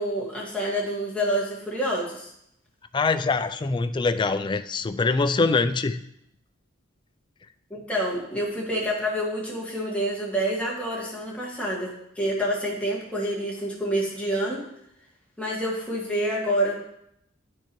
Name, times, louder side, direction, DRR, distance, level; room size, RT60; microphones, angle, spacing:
voice 1, 0.0-2.3 7.7-14.6 15.4-16.7, equal, 5° left, -5 dB, 1.7 m, -27 dB
voice 2, 2.9-6.0, left 3 dB, 25° left, 11 dB, 0.3 m, -24 dB
11.5 x 4.6 x 3.0 m, 0.76 s
head